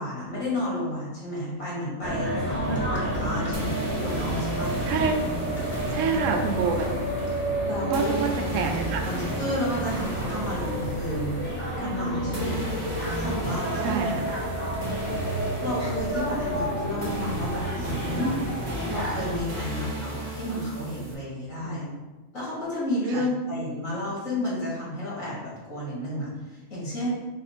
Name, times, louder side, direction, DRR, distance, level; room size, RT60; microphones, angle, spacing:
voice 1, 0.0-4.8 7.6-8.1 9.0-14.0 15.6-18.4 18.8-21.8 22.3-27.1, left 1 dB, 85° left, -7 dB, 2.2 m, -31 dB
sound 1, 2.0-19.4, equal, 10° left, 0.9 m, -30 dB
sound 2, 3.5-21.1, right 2 dB, 30° right, 1.0 m, -35 dB
voice 2, 4.9-5.2 5.9-6.9 7.9-9.1 13.8-14.3 21.6-22.0 23.1-23.3, right 5 dB, 75° right, 4 dB, 0.9 m, -27 dB
4.2 x 2.6 x 4.2 m, 1.2 s
omnidirectional pair, 1.4 m